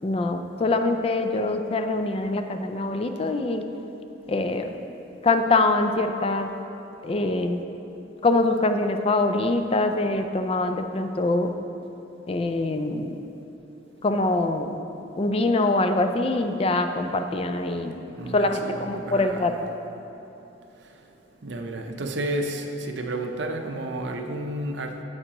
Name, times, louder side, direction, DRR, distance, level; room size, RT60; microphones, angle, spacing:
voice 1, 0.0-3.6 4.3-4.7 5.2-6.5 7.0-7.6 8.2-11.5 12.3-13.2 14.0-14.8 15.2-18.0 18.3-19.5, left 2 dB, 30° left, 7 dB, 0.3 m, -24 dB
voice 2, 18.2-19.6 21.4-25.0, right 1 dB, 65° right, 4 dB, 0.6 m, -31 dB
9.6 x 7.9 x 2.9 m, 2.9 s
head